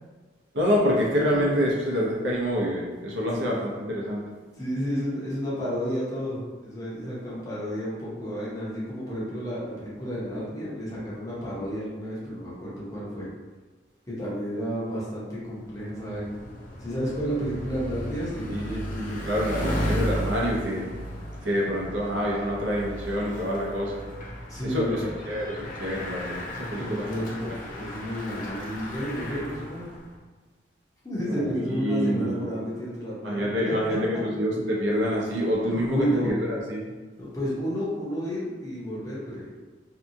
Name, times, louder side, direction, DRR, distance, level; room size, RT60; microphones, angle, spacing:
voice 1, 0.5-4.2 18.5-20.9 21.4-24.0 24.6-27.5 31.3-32.5 33.2-36.8, equal, 80° right, -3 dB, 0.7 m, -27 dB
voice 2, 4.6-13.3 14.1-16.4 16.8-18.5 24.5-25.0 26.8-29.9 31.0-34.0 35.6-36.3 37.2-39.5, equal, 20° left, -8 dB, 0.8 m, -31 dB
Bicycle, 15.5-30.1, equal, 45° left, 0.5 m, -35 dB
2.7 x 2.3 x 2.6 m, 1.3 s
head